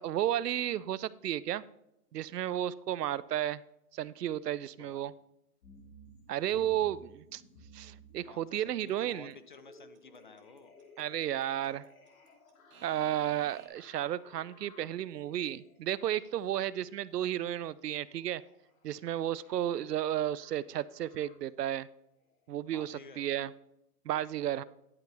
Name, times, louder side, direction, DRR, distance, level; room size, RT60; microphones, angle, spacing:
voice 1, 0.0-1.6 2.1-3.6 3.9-5.1 6.3-7.4 7.7-9.3 11.0-11.9 12.8-18.4 18.8-21.9 22.5-23.5 24.1-24.6, right 11 dB, 80° right, 19 dB, 0.6 m, -33 dB
voice 2, 4.6-5.0 8.3-10.8 22.7-23.2, left 4 dB, 35° left, 11 dB, 0.5 m, -53 dB
sound 1, 5.6-21.5 22.2-22.8 23.3-23.4, equal, 60° left, 2.6 m, -59 dB
Alarm / Clock, 8.9-13.7, right 6 dB, 20° right, 1.0 m, -56 dB
11.0 x 8.0 x 3.4 m, 0.85 s
hypercardioid pair, 160°, 47 cm